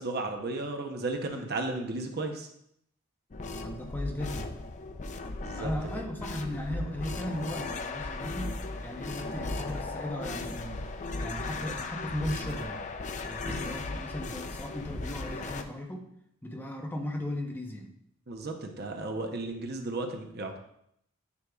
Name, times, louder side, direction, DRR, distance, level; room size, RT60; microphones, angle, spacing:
voice 1, 0.0-2.5 5.4-5.7 13.4-13.7 18.3-20.6, right 2 dB, 55° right, 3 dB, 0.8 m, -34 dB
sound 1, 3.3-15.6, left 3 dB, 35° left, 0.4 m, -36 dB
voice 2, 3.5-4.5 5.6-8.6 8.8-10.9 11.2-12.8 13.3-16.1 16.4-17.9 19.5-19.6, left 1 dB, 10° left, 1 dB, 0.9 m, -37 dB
9.7 x 5.3 x 2.4 m, 0.73 s
head